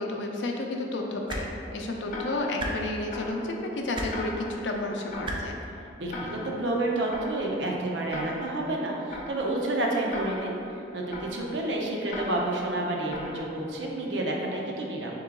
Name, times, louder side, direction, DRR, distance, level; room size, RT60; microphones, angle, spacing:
voice 1, 0.0-1.5 1.7-5.6, left 2 dB, 90° left, 1 dB, 0.5 m, -31 dB
sound 1, 1.3-1.4 2.6-2.7 3.9-4.1 5.2-5.4 6.6-6.7, right 1 dB, 30° right, 0.4 m, -32 dB
Tick-tock, 2.1-14.0, left 2 dB, 45° left, 0.6 m, -41 dB
voice 2, 6.0-15.2, right 2 dB, 85° right, -1 dB, 0.6 m, -30 dB
3.8 x 3.0 x 3.7 m, 2.6 s
head